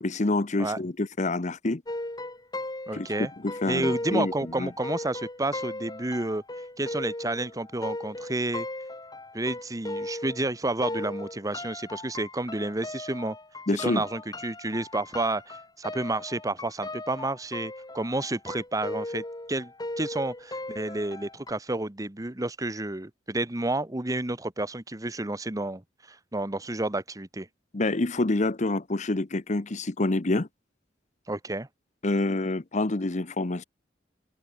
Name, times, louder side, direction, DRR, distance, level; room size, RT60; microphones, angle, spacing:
voice 1, 0.0-1.8 2.9-3.1 3.4-4.7 13.7-14.0 27.7-30.5 32.0-33.6, left 2 dB, 40° left, 0.9 m, -27 dB
sound 1, 1.9-10.5 10.8-21.5, left 1 dB, 20° left, 3.7 m, -37 dB
voice 2, 2.9-3.3 3.7-6.4 6.8-8.7 9.3-13.4 13.8-19.7 20.0-25.8 26.1-27.5 31.3-31.7, right 2 dB, 20° right, 1.1 m, -30 dB
head